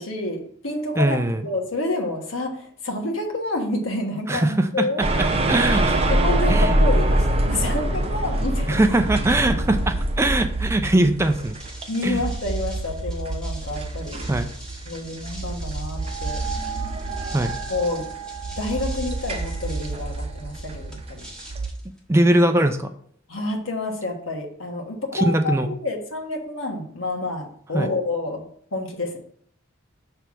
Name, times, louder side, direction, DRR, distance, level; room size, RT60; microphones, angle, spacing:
voice 1, 0.0-5.0 6.1-8.8 11.9-14.3 14.8-16.4 17.7-18.1 18.6-21.2 23.3-28.5 28.7-29.2, left 2 dB, 85° left, 2 dB, 1.3 m, -28 dB
voice 2, 1.0-1.4 4.3-4.9 5.5-6.0 6.5-6.7 8.7-11.6 12.0-12.2 14.3-14.5 17.3-17.5 22.1-22.9 25.1-25.7 27.7-27.9, right 1 dB, 15° right, 7 dB, 0.4 m, -21 dB
sound 1, 5.0-21.7, right 1 dB, 30° right, 0.7 m, -25 dB
sound 2, 11.1-22.6, right 1 dB, 5° left, 1.4 m, -44 dB
5.9 x 3.4 x 5.9 m, 0.63 s
head